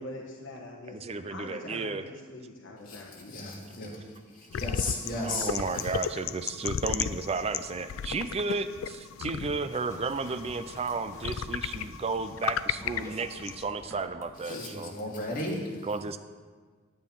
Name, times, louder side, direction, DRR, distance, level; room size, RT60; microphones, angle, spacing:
voice 1, 0.0-3.6 3.9-4.0 14.5-14.6, left 1 dB, 65° left, -1 dB, 1.2 m, -43 dB
voice 2, 0.9-2.0 4.5-4.6 5.2-14.9 15.9-16.2, right 4 dB, 30° right, 10 dB, 0.4 m, -33 dB
voice 3, 2.8-5.9 14.3-15.9, left 2 dB, 45° left, -4 dB, 2.4 m, -36 dB
sound 1, 4.5-13.7, left 8 dB, 85° left, 0.4 m, -35 dB
sound 2, 9.8-14.2 15.0-15.1, equal, 15° left, 1.3 m, -50 dB
9.9 x 8.8 x 5.3 m, 1.5 s
head